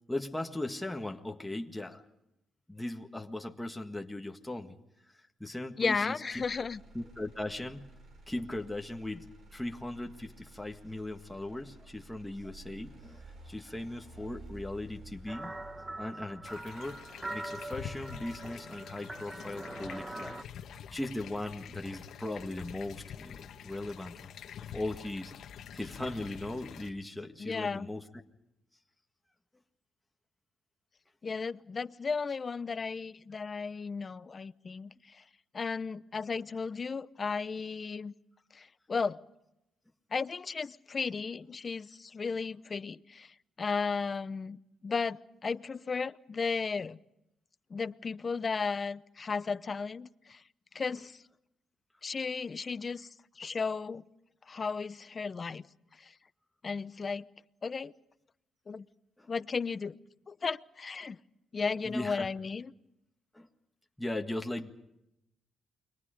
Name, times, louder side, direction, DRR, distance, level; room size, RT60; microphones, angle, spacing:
voice 1, 0.1-2.0 2.7-4.8 5.1-6.5 6.9-7.9 8.3-15.5 16.0-20.4 20.9-24.3 24.7-25.3 25.7-28.0 59.2-59.3 61.8-62.3 63.3-63.5 64.0-64.7, left 1 dB, 5° left, 3 dB, 1.8 m, -38 dB
voice 2, 5.8-6.8 27.4-27.9 31.2-35.2 35.5-38.1 38.5-39.2 40.1-47.0 47.7-50.4 50.7-51.2 52.0-53.1 53.4-54.0 54.5-55.7 56.0-56.1 56.6-57.2 57.6-57.9 58.7-58.9 59.3-60.0 60.3-61.2 61.5-62.7, left 5 dB, 35° left, 16 dB, 0.8 m, -34 dB
Motor vehicle (road), 6.3-20.3 20.8-21.3, right 2 dB, 55° right, 6.6 m, -54 dB
sound 1, 15.3-20.4, right 2 dB, 15° right, 1.1 m, -43 dB
sound 2, 16.4-26.9, left 8 dB, 70° left, 1.5 m, -47 dB
29.5 x 23.0 x 5.1 m, 0.84 s
cardioid pair, 90°, 0 cm